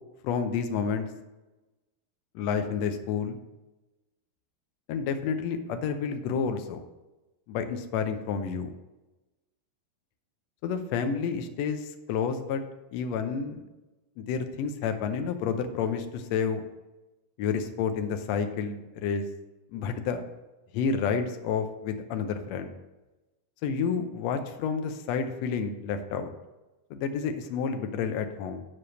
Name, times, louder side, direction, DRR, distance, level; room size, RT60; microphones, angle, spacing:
voice 1, 0.2-1.1 2.4-3.4 4.9-6.8 7.5-8.7 10.6-12.6 12.9-13.7 14.2-16.6 17.4-19.3 19.7-20.2 20.7-22.7 23.6-26.3 26.9-28.7, left 6 dB, 75° left, 7 dB, 1.6 m, -30 dB
8.6 x 4.8 x 6.3 m, 1.1 s
omnidirectional pair, 3.7 m